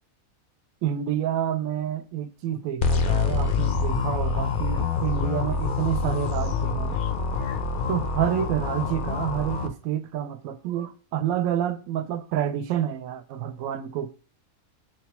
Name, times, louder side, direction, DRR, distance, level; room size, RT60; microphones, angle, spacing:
voice 1, 0.8-7.0 7.9-14.1, right 10 dB, 80° right, 1.0 m, -28 dB
sound 1, 2.8-9.7, left 5 dB, 70° left, 0.4 m, -26 dB
4.4 x 2.2 x 2.8 m
omnidirectional pair, 1.5 m